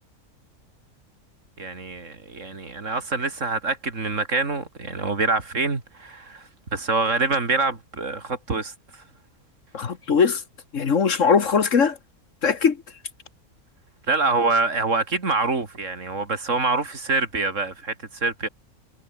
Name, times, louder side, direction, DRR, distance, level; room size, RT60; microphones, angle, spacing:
voice 1, 1.6-9.0 14.1-18.5, right 3 dB, 55° right, 3.1 m, -25 dB
voice 2, 9.7-10.4 10.7-12.0 12.4-12.8, left 6 dB, 55° left, 1.7 m, -20 dB
omnidirectional pair, 1.6 m